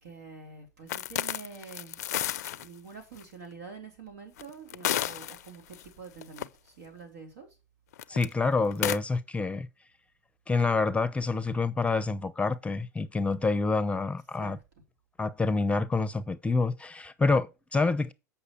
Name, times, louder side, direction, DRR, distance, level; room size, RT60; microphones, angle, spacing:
voice 1, 0.0-2.2 2.5-7.5 14.4-14.6, right 5 dB, 70° right, 3.5 m, -46 dB
sound 1, 0.9-2.7 3.2-3.3 4.4-5.8 6.2-6.4 7.9-8.3 8.7-9.0, left 12 dB, 75° left, 0.4 m, -31 dB
voice 2, 8.1-9.7 10.5-14.6 15.2-18.1, left 3 dB, 15° left, 0.7 m, -27 dB
8.2 x 5.7 x 4.4 m
hypercardioid pair, 85°, 9 cm